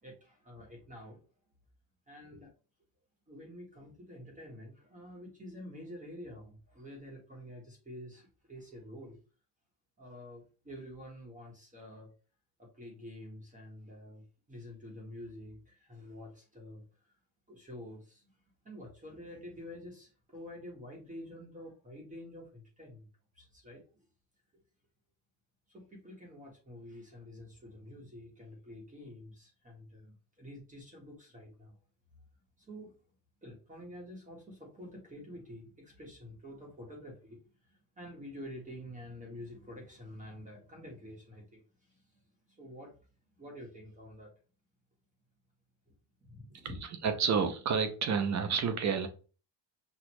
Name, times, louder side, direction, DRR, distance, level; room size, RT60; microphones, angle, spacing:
voice 1, 0.0-1.3 2.1-2.5 3.3-9.2 10.0-12.1 12.6-17.2 17.5-18.4 18.6-24.0 24.5-24.6 25.7-31.8 32.6-33.0 33.4-43.0 43.3-44.3 45.9-46.0 46.3-46.8, left 1 dB, 15° right, -2 dB, 1.2 m, -48 dB
voice 2, 47.0-49.1, right 6 dB, 40° right, 8 dB, 0.7 m, -29 dB
6.2 x 2.4 x 3.0 m, 0.36 s
cardioid pair, 145°, 44 cm